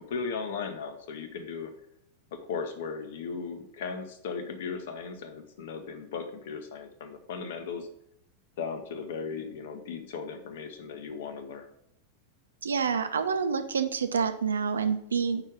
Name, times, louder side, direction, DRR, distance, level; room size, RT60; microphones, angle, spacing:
voice 1, 0.1-1.7 2.3-7.9 8.6-11.7, left 5 dB, 55° left, 7 dB, 0.9 m, -37 dB
voice 2, 12.6-15.4, right 6 dB, 70° right, 9 dB, 0.6 m, -28 dB
5.5 x 4.9 x 5.1 m, 0.77 s
figure-of-eight pair, 90°, 0 cm